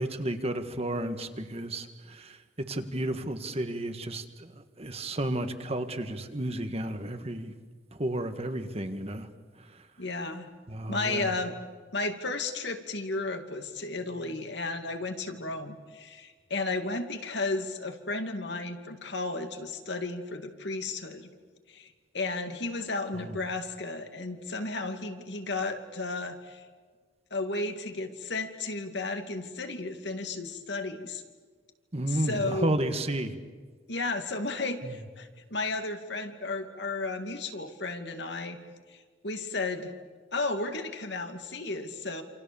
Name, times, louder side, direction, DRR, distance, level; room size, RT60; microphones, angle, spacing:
voice 1, 0.0-4.5 4.8-7.5 8.0-9.3 10.7-11.3 23.1-23.2 31.9-33.3 34.8-34.9, right 1 dB, 35° right, 8 dB, 1.7 m, -32 dB
voice 2, 10.0-10.5 10.9-11.6 11.9-21.3 21.7-26.6 27.3-31.2 32.1-32.8 33.9-38.6 38.9-39.9 40.3-42.2, left 3 dB, 60° left, 6 dB, 2.5 m, -33 dB
28.0 x 28.0 x 7.1 m, 1.5 s
head